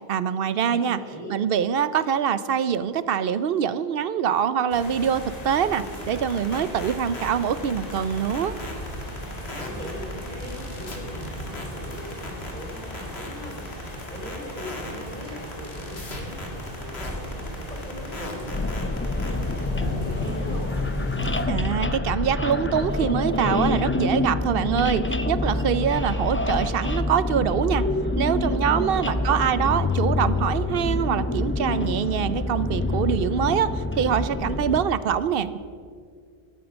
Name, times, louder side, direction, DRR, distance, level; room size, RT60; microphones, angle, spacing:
voice 1, 0.1-1.0 1.3-8.5 21.5-27.8 28.2-35.6, right 8 dB, 70° right, 15 dB, 0.8 m, -24 dB
voice 2, 0.7-1.3 9.4-20.7 28.7-29.4, equal, 35° right, -2 dB, 3.8 m, -40 dB
sound 1, 4.7-21.5, equal, 40° left, 2.6 m, -36 dB
sound 2, 5.8-19.6, left 2 dB, 85° left, 2.3 m, -38 dB
sound 3, 18.5-34.8, left 2 dB, 15° left, 0.4 m, -26 dB
13.0 x 12.0 x 6.2 m, 2.2 s
omnidirectional pair, 1.0 m